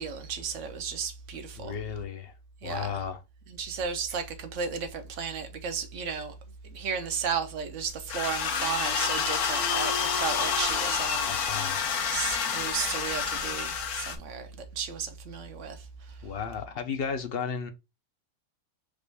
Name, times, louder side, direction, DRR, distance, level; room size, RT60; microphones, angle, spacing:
voice 1, 0.0-1.7 2.6-2.9 3.6-6.3 6.6-11.3 12.1-14.5 14.7-15.8, right 6 dB, 60° right, 1.1 m, -34 dB
voice 2, 1.6-2.3 2.6-3.2 11.2-11.9 16.2-17.7, left 6 dB, 50° left, 0.8 m, -34 dB
sound 1, 8.1-14.2, left 6 dB, 85° left, 1.3 m, -28 dB
5.2 x 2.5 x 3.3 m
omnidirectional pair, 1.5 m